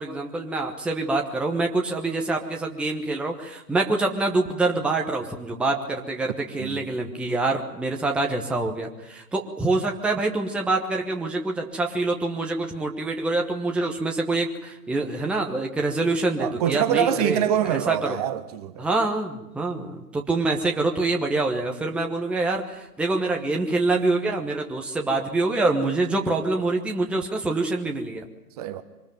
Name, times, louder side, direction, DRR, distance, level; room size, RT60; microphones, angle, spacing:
voice 1, 0.0-17.4 17.7-18.2 18.8-28.3, right 2 dB, ahead, 1.1 m, -25 dB
voice 2, 16.4-18.9 28.6-28.8, right 9 dB, 25° right, 1.1 m, -25 dB
24.0 x 20.0 x 9.2 m
hypercardioid pair, 135°, 47 cm